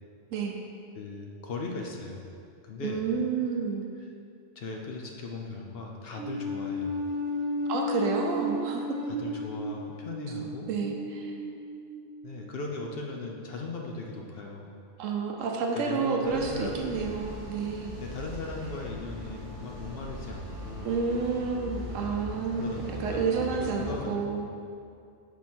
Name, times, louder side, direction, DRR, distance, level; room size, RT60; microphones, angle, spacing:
voice 1, 0.9-2.2 2.6-3.0 4.6-7.0 9.0-10.7 12.2-14.7 15.7-16.9 18.0-20.9 21.9-22.3 22.6-24.4, left 3 dB, 60° left, 1 dB, 0.7 m, -38 dB
voice 2, 2.8-3.8 7.7-9.0 10.7-11.3 15.0-18.0 20.8-24.7, right 5 dB, 85° right, 2 dB, 1.1 m, -30 dB
sound 1, 6.2-12.6, left 1 dB, 15° right, 0.3 m, -34 dB
sound 2, 16.2-24.0, equal, 55° right, 1.4 m, -40 dB
5.8 x 4.6 x 4.3 m, 2.4 s
omnidirectional pair, 1.3 m